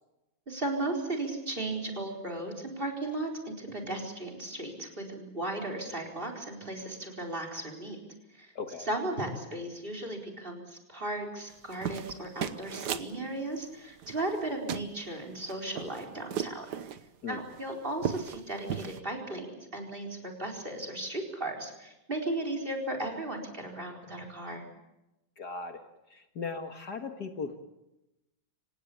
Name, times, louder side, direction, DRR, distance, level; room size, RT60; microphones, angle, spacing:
voice 1, 0.5-8.0 8.3-16.7 17.3-24.6, right 2 dB, 25° right, 5 dB, 4.5 m, -36 dB
voice 2, 8.6-8.9 17.2-17.4 25.4-25.8 26.1-27.6, left 4 dB, 55° left, 6 dB, 2.0 m, -38 dB
sound 1, 11.5-13.1 14.0-14.4 14.7-14.9 15.4-17.0 17.5-17.6 17.9-18.4 18.7-19.0, right 8 dB, 60° right, 1.5 m, -35 dB
26.5 x 18.0 x 8.5 m, 0.94 s
omnidirectional pair, 2.2 m